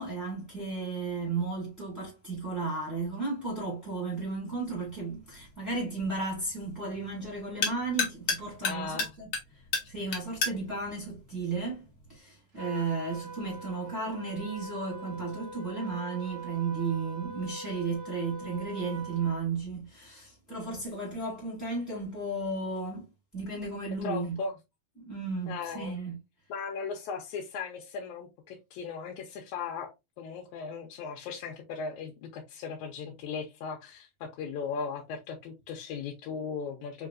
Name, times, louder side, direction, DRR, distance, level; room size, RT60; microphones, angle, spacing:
voice 1, 0.0-9.3 9.9-11.8 12.1-23.1 23.3-24.4 25.0-26.2, right 3 dB, ahead, 1.1 m, -34 dB
sound 1, 4.5-12.2, left 4 dB, 60° left, 1.3 m, -36 dB
voice 2, 8.6-9.1 24.0-24.5 25.5-26.0 26.5-37.1, left 5 dB, 80° left, 2.0 m, -37 dB
Trumpet, 12.6-19.5, right 3 dB, 75° right, 1.0 m, -43 dB
4.8 x 3.0 x 2.4 m
omnidirectional pair, 3.4 m